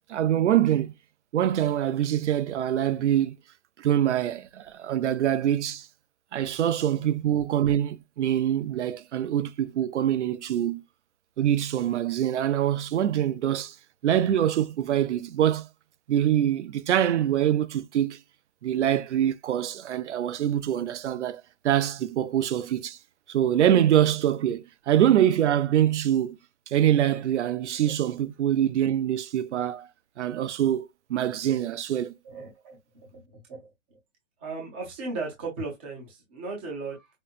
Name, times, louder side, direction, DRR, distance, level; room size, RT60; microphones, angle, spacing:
voice 1, 0.1-0.9 1.3-3.4 3.8-5.9 6.3-10.8 11.4-13.8 14.0-15.7 16.1-18.2 18.6-23.0 23.3-26.4 26.7-29.9 30.2-32.1, right 11 dB, 65° right, 0.5 m, -24 dB
voice 2, 32.2-33.7 34.4-37.1, right 3 dB, 10° right, 0.5 m, -36 dB
5.2 x 2.1 x 2.4 m
hypercardioid pair, 175°, 38 cm